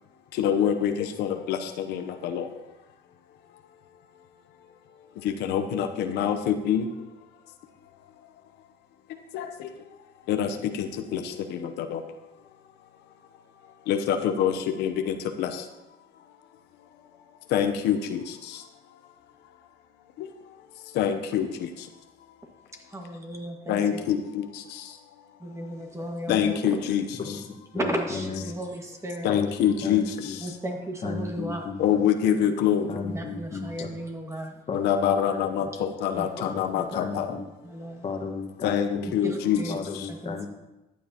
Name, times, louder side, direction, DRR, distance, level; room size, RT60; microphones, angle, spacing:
voice 1, 0.4-0.9 1.2-1.6 1.9-2.4 5.4-6.8 9.3-9.5 10.3-10.5 10.8-10.9 11.1-11.2 11.5-11.6 11.9-12.0 13.9-14.5 14.8-15.5 17.5-18.2 21.0-21.5 23.7-24.2 26.3-27.0 29.2-30.0 31.8-32.9 34.7-37.3 38.6-39.6, left 9 dB, 85° left, 7 dB, 0.8 m, -25 dB
voice 2, 22.9-24.0 25.4-26.6 27.7-29.3 30.4-31.7 33.0-34.5 36.1-36.3 36.7-36.8 37.6-38.0 39.2-39.8 40.1-40.5, equal, 15° right, 1 dB, 1.8 m, -34 dB
voice 3, 27.7-28.5 29.3-30.4 31.0-31.8 32.9-33.9 34.7-35.7 36.4-37.4 38.0-39.1 39.7-40.5, left 4 dB, 35° left, 3 dB, 1.5 m, -35 dB
14.0 x 9.3 x 2.9 m, 0.99 s
cardioid pair, 110°, 17 cm